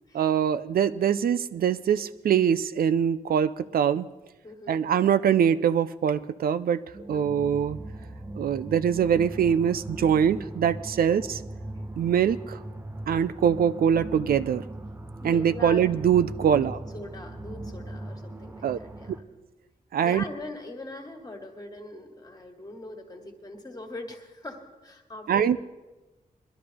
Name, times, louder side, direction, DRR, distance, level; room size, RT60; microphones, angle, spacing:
voice 1, 0.1-4.1 4.7-6.8 7.1-7.8 8.4-11.4 12.0-12.6 13.1-14.6 15.2-16.8 18.6-18.8 19.9-20.2 25.3-25.6, right 8 dB, 85° right, 12 dB, 0.4 m, -23 dB
voice 2, 4.4-4.8 7.0-7.3 11.0-11.2 15.2-15.8 16.5-16.7 16.9-19.1 20.0-25.6, left 2 dB, 25° left, 3 dB, 1.6 m, -41 dB
sound 1, 6.9-19.2, right 1 dB, 15° right, 0.5 m, -39 dB
21.5 x 12.0 x 3.4 m, 1.1 s
wide cardioid pair, 155°, 15 cm